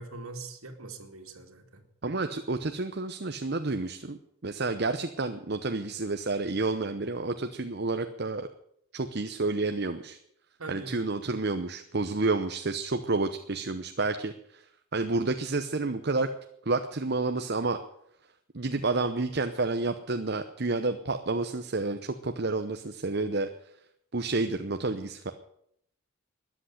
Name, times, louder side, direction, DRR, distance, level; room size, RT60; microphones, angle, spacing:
voice 1, 0.0-1.8 10.6-11.0, right 3 dB, 85° right, 5 dB, 2.6 m, -42 dB
voice 2, 2.0-8.5 8.9-10.2 10.7-14.6 14.9-16.3 16.7-17.8 18.5-23.5 24.1-25.3, right 3 dB, 50° right, 8 dB, 0.9 m, -30 dB
13.5 x 10.5 x 10.0 m, 0.73 s
head